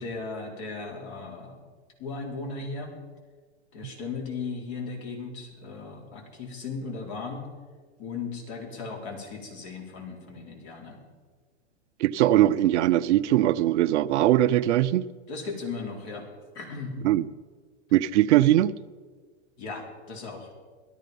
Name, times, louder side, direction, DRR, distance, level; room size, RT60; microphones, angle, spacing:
voice 1, 0.0-1.7 2.0-2.9 3.7-7.5 8.0-11.0 15.3-16.3 16.5-17.0 18.2-18.4 19.6-20.5, left 4 dB, 55° left, 4.4 m, -37 dB
voice 2, 12.0-15.0 17.0-17.3 17.9-18.7, right 13 dB, 65° right, 0.7 m, -21 dB
17.0 x 13.0 x 5.4 m
hypercardioid pair, 115°, 37 cm